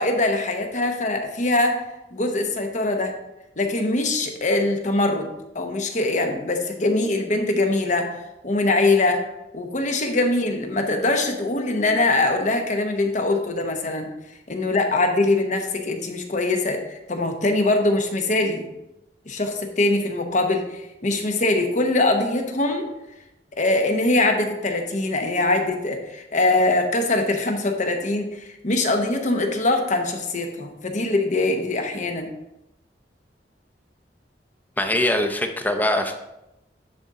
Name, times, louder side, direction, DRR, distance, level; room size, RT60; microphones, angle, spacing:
voice 1, 0.0-1.8 2.1-3.1 3.6-5.3 5.5-8.1 8.4-9.2 9.5-14.1 14.5-18.6 19.3-22.9 23.5-32.3, left 2 dB, 45° left, 4 dB, 0.9 m, -22 dB
voice 2, 34.8-36.2, left 1 dB, 10° left, 6 dB, 0.6 m, -22 dB
10.5 x 4.1 x 3.7 m, 0.92 s
head